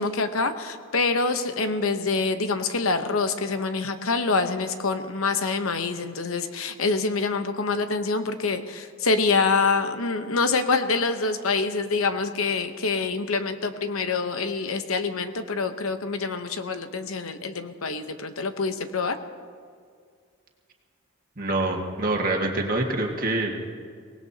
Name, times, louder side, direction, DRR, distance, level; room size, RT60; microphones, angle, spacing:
voice 1, 0.0-19.2, left 4 dB, 85° left, 9 dB, 0.9 m, -26 dB
voice 2, 21.4-23.6, right 2 dB, 40° right, 1 dB, 1.8 m, -25 dB
24.0 x 18.5 x 2.8 m, 2.1 s
head